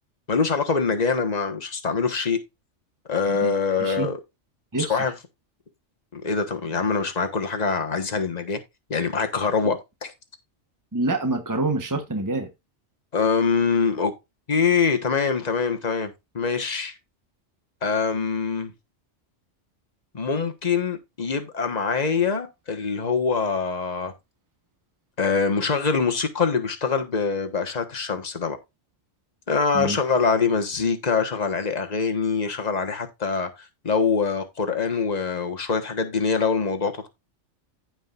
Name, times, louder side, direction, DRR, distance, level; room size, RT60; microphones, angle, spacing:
voice 1, 0.3-2.4 3.1-4.2 4.8-5.1 6.1-8.6 8.9-9.8 13.1-14.1 14.5-16.9 17.8-18.7 20.1-24.1 25.2-28.6 29.5-37.1, left 5 dB, 35° left, 1.4 m, -24 dB
voice 2, 3.8-4.1 4.7-5.0 10.9-12.5 29.7-30.0, right 2 dB, 15° right, 1.1 m, -26 dB
15.5 x 5.1 x 2.5 m
omnidirectional pair, 1.2 m